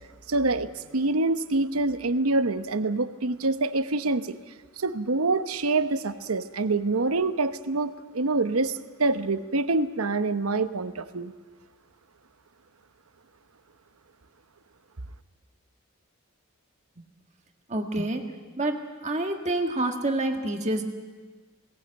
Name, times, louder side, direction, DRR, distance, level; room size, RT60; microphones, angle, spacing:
voice 1, 0.3-4.4 4.8-11.3, right 3 dB, 85° right, 11 dB, 1.0 m, -26 dB
voice 2, 17.7-18.2 18.6-20.8, right 2 dB, 35° right, 4 dB, 1.7 m, -27 dB
21.5 x 18.5 x 8.8 m, 1.4 s
head